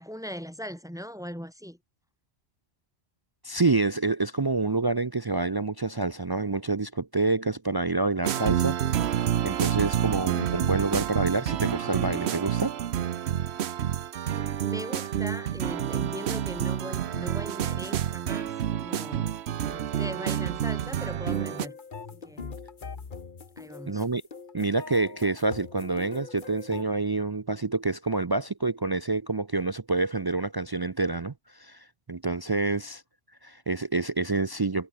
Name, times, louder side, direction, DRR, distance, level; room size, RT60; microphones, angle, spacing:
voice 1, 0.0-1.8 14.3-19.3 19.6-21.7 22.1-22.6 23.6-24.0 32.6-32.8, equal, 5° right, 4.1 m, -40 dB
voice 2, 3.4-12.8 23.9-24.2 24.5-33.0 33.4-34.9, right 3 dB, 40° right, 0.3 m, -27 dB
sound 1, 8.2-21.7, right 10 dB, 70° right, 1.0 m, -28 dB
sound 2, 21.2-26.8, left 5 dB, 45° left, 1.5 m, -42 dB
omnidirectional pair, 1.2 m